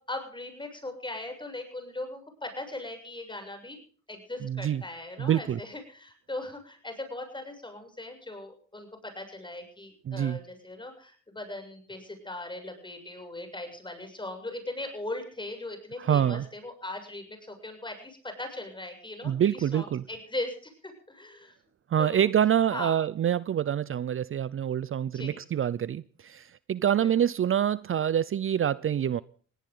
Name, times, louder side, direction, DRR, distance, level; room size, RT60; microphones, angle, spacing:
voice 1, 0.1-3.8 4.1-21.5 22.0-22.3 22.7-23.0 25.1-25.4 27.0-27.1, left 2 dB, 15° left, 7.3 m, -39 dB
voice 2, 4.4-4.8 5.2-5.6 10.1-10.4 16.0-16.4 19.2-20.0 21.9-29.2, right 9 dB, 45° right, 0.6 m, -26 dB
20.0 x 17.5 x 3.9 m
cardioid pair, 90°, 30 cm